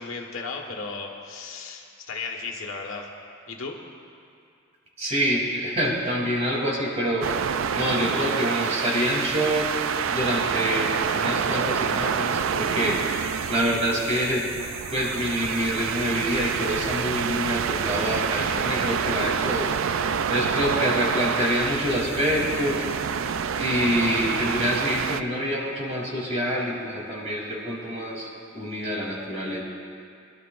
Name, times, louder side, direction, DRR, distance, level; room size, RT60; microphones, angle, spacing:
voice 1, 0.0-3.1 3.5-3.8, left 4 dB, 90° left, 1 dB, 1.4 m, -35 dB
voice 2, 5.0-14.5 14.9-19.7 20.0-22.8 23.6-29.6, equal, 35° right, -3 dB, 3.0 m, -26 dB
sound 1, 7.2-25.2, right 7 dB, 75° right, 0.4 m, -27 dB
23.5 x 12.0 x 2.5 m, 2.4 s
head